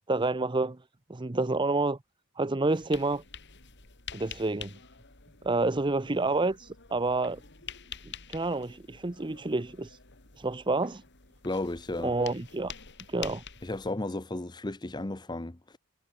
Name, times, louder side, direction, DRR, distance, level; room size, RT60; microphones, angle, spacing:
voice 1, 0.1-0.8 1.1-2.0 2.4-3.2 4.1-4.8 5.4-7.4 8.0-10.0 10.4-11.0 12.0-12.7 13.1-13.4, right 2 dB, 20° right, 0.7 m, -29 dB
sound 1, 2.7-13.9, left 7 dB, 55° left, 4.2 m, -47 dB
voice 2, 11.4-12.1 13.6-15.8, left 2 dB, 20° left, 0.8 m, -34 dB
head